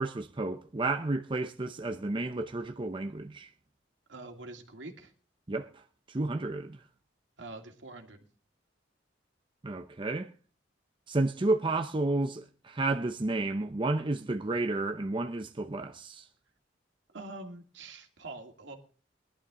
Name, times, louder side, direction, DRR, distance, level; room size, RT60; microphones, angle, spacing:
voice 1, 0.0-3.5 5.5-5.8 6.1-6.8 9.6-10.3 11.1-16.3, right 2 dB, 25° right, 0.6 m, -31 dB
voice 2, 4.1-5.1 7.4-8.2 17.1-18.8, right 2 dB, 70° right, 2.4 m, -45 dB
20.5 x 11.5 x 3.7 m
head